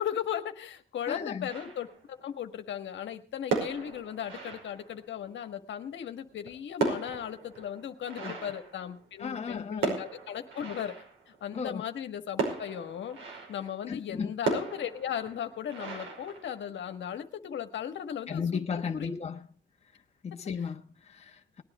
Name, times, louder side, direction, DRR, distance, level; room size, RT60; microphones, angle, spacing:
voice 1, 0.0-1.9 2.2-10.9 11.3-13.2 13.5-18.4 18.9-19.2, left 9 dB, 70° left, 1.5 m, -36 dB
voice 2, 1.1-1.5 8.2-8.3 9.2-10.0 11.5-11.8 13.9-14.3 18.3-19.4 20.2-21.6, left 6 dB, 30° left, 1.2 m, -35 dB
sound 1, 1.5-2.2 3.3-5.2 6.2-9.4 9.8-11.4 12.4-13.8 14.4-17.0, right 4 dB, 80° right, 5.4 m, -36 dB
19.0 x 9.9 x 4.8 m
cardioid pair, 90°, 20 cm